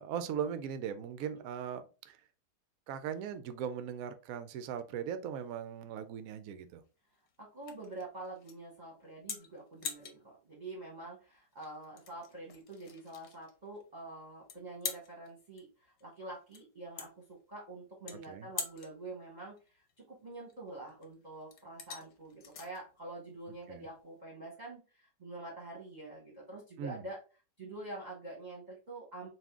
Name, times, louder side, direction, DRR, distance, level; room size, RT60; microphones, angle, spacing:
voice 1, 0.0-2.2 2.9-6.8 18.3-18.5 23.7-23.9 26.8-27.0, right 8 dB, 70° right, 0.8 m, -39 dB
sound 1, 5.4-24.2, left 6 dB, 85° left, 1.5 m, -47 dB
voice 2, 7.4-27.2 27.6-29.3, right 2 dB, 30° right, 0.9 m, -46 dB
4.2 x 2.5 x 3.5 m
omnidirectional pair, 1.9 m